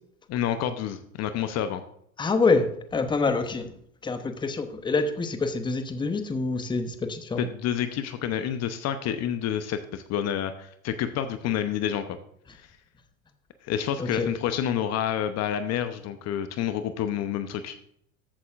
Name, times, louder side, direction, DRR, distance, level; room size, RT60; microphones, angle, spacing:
voice 1, 0.3-1.8 7.4-12.2 12.5-12.7 13.6-17.8, left 9 dB, 40° left, 10 dB, 0.8 m, -29 dB
voice 2, 2.2-3.7 4.0-7.5 14.0-14.3, left 3 dB, 10° left, 8 dB, 0.9 m, -26 dB
13.5 x 8.1 x 2.5 m, 0.69 s
hypercardioid pair, 90°, 42 cm